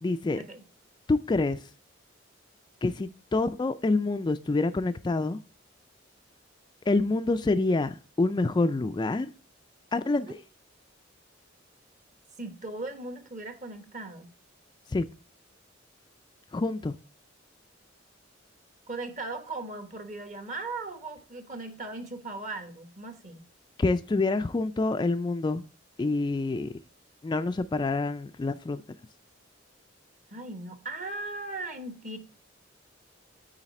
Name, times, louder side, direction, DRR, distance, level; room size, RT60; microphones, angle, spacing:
voice 1, 0.0-0.4 1.1-1.7 2.8-5.4 6.9-9.3 9.9-10.3 14.9-15.1 16.5-16.9 23.8-25.6 26.0-26.7 27.2-28.8, left 3 dB, 25° left, 10 dB, 0.3 m, -27 dB
voice 2, 12.4-14.3 18.9-23.4 30.3-32.2, right 2 dB, 40° right, 7 dB, 1.3 m, -38 dB
9.0 x 4.1 x 4.1 m, 0.38 s
head